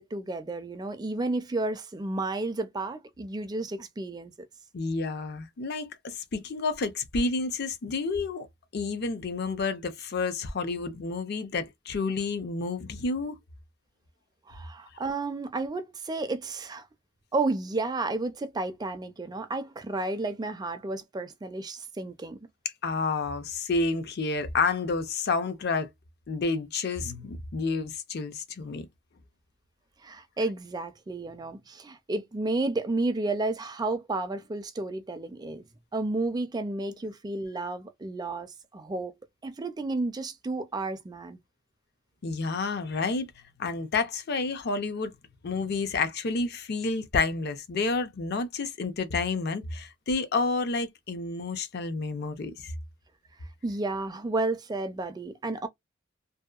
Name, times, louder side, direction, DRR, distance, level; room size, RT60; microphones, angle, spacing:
voice 1, 0.0-4.3 14.5-16.9 17.3-22.4 30.0-35.6 35.9-39.1 39.4-41.4 53.6-55.7, right 2 dB, 20° right, 0.3 m, -32 dB
voice 2, 4.7-8.5 8.7-13.4 22.8-25.9 26.3-28.9 42.2-43.3 43.6-45.1 45.4-52.7, left 4 dB, 55° left, 0.5 m, -30 dB
2.7 x 2.1 x 2.3 m
head